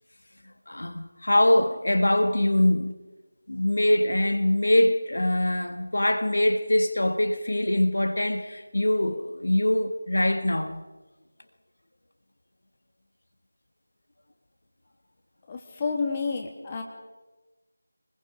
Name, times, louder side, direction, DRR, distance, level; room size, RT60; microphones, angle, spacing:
voice 1, 0.7-2.9 3.5-10.8, left 1 dB, 65° left, 7 dB, 1.6 m, -23 dB
voice 2, 15.5-16.8, left 4 dB, 20° left, 2 dB, 2.1 m, -30 dB
27.5 x 21.0 x 5.0 m, 1.2 s
figure-of-eight pair, 165°, 0 cm